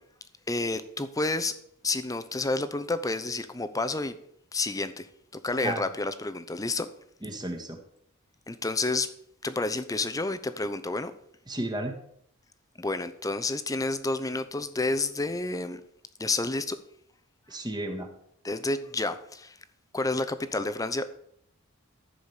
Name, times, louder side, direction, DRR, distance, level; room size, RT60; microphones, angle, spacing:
voice 1, 0.5-1.5 1.8-4.2 4.5-5.1 5.4-6.9 8.5-9.1 9.4-11.1 12.8-15.8 16.2-16.8 18.4-19.6 19.9-21.0, left 2 dB, 15° left, 12 dB, 0.7 m, -29 dB
voice 2, 7.2-7.8 11.5-12.0 17.5-18.1, right 1 dB, 20° right, 3 dB, 1.6 m, -33 dB
14.5 x 5.0 x 7.3 m, 0.70 s
head